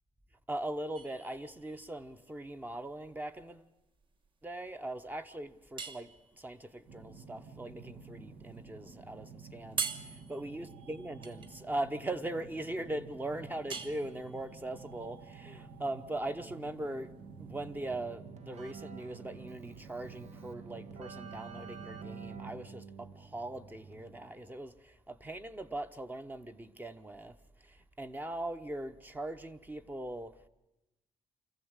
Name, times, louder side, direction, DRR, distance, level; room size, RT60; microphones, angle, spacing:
voice 1, 0.5-3.7 4.4-6.1 6.4-17.1 17.4-27.3 27.6-30.5, right 1 dB, 15° right, 0.9 m, -40 dB
sound 1, 0.9-17.8, right 5 dB, 40° right, 1.3 m, -46 dB
sound 2, 6.9-22.7, right 4 dB, 80° right, 2.0 m, -51 dB
Keyboard (musical), 17.2-24.5, right 6 dB, 60° right, 1.3 m, -50 dB
25.0 x 14.5 x 8.1 m
cardioid pair, 135°, 13 cm